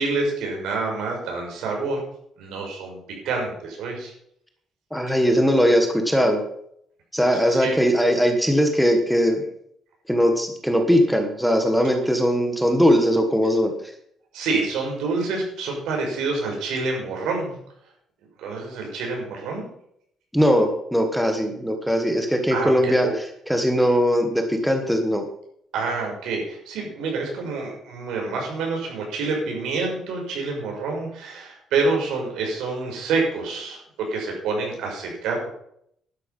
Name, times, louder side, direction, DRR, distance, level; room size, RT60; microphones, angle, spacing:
voice 1, 0.0-2.0 2.4-4.1 7.5-7.7 14.3-17.6 18.4-19.6 22.5-23.1 25.7-35.5, right 3 dB, 85° right, 0 dB, 5.8 m, -27 dB
voice 2, 4.9-6.4 7.1-9.4 10.1-13.7 20.3-23.1 23.5-25.2, equal, ahead, 4 dB, 1.4 m, -20 dB
11.5 x 10.5 x 5.5 m, 0.70 s
cardioid pair, 175°, 0 cm